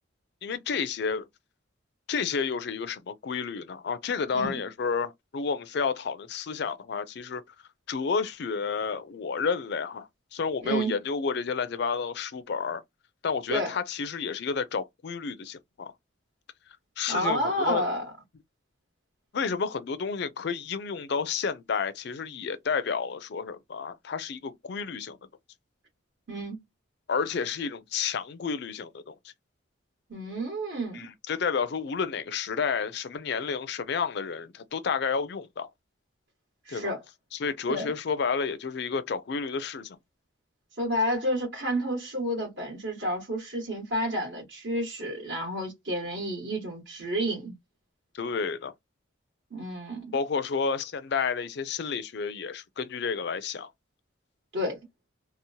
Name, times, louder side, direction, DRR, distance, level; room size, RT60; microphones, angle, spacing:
voice 1, 0.4-1.3 2.1-7.4 7.9-12.8 13.2-15.9 17.0-17.9 19.3-25.2 27.1-29.3 30.9-35.7 36.7-36.9 37.3-40.0 48.1-48.7 50.1-53.7, left 5 dB, 55° left, 0.4 m, -30 dB
voice 2, 17.1-18.1 26.3-26.6 30.1-31.0 36.6-37.0 37.7-37.9 40.8-47.5 49.5-50.1 54.5-54.8, equal, 60° right, 1.1 m, -30 dB
2.9 x 2.0 x 2.7 m
head